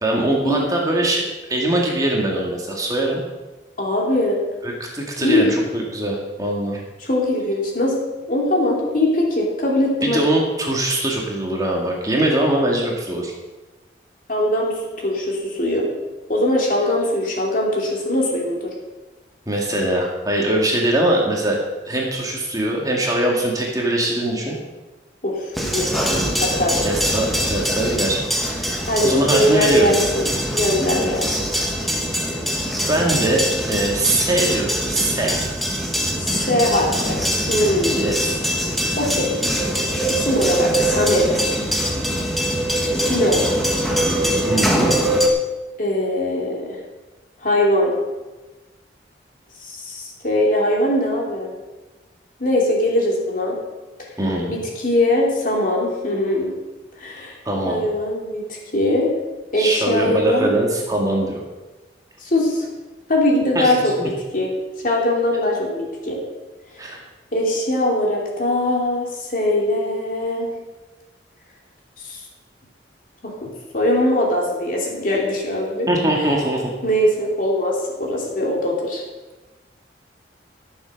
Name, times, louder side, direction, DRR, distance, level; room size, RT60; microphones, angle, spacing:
voice 1, 0.0-1.2 1.5-3.2 4.6-6.8 10.0-13.3 19.5-21.6 21.9-24.6 26.8-28.2 28.5-30.0 32.9-33.4 33.7-35.4 37.9-38.4 44.5-45.0 54.2-54.6 57.5-57.9 59.6-61.4 63.6-63.7 64.0-64.1 66.8-67.0 75.9-76.7, right 1 dB, 20° right, -1 dB, 2.0 m, -22 dB
voice 2, 3.8-4.4 5.2-5.5 7.0-8.0 8.3-10.2 14.3-15.9 16.3-18.7 25.2-25.9 26.4-26.8 28.9-30.2 30.5-31.4 36.2-37.2 37.5-38.0 39.0-39.5 40.1-41.6 42.9-43.7 45.8-46.8 47.4-47.9 49.6-51.5 52.4-53.5 54.0-54.1 54.5-56.5 57.0-57.4 57.6-59.1 59.5-60.5 62.2-62.7 63.1-64.5 64.8-66.2 67.3-70.5 72.0-72.2 73.2-75.9 76.8-79.0, left 1 dB, 45° left, -1 dB, 2.9 m, -21 dB
sound 1, 25.5-45.3, equal, ahead, 1.4 m, -22 dB
14.0 x 7.1 x 6.6 m, 1.2 s
head